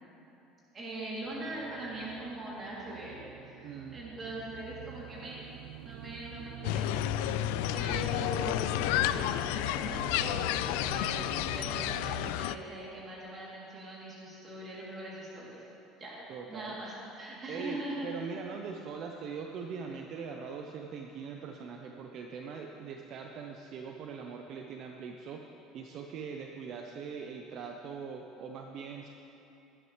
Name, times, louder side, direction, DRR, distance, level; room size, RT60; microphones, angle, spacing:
voice 1, 0.7-5.4 5.8-15.6 16.0-16.2 16.5-18.1, right 1 dB, 25° right, -6 dB, 2.9 m, -41 dB
sound 1, 1.2-12.3, right 14 dB, 85° right, 0.4 m, -47 dB
voice 2, 3.6-4.0 16.3-16.7 17.5-25.4 25.7-29.1, right 6 dB, 40° right, 2 dB, 0.6 m, -41 dB
sound 2, 6.6-12.6, left 13 dB, 80° left, 0.3 m, -31 dB
18.0 x 11.0 x 3.2 m, 2.9 s
cardioid pair, 170°, 0 cm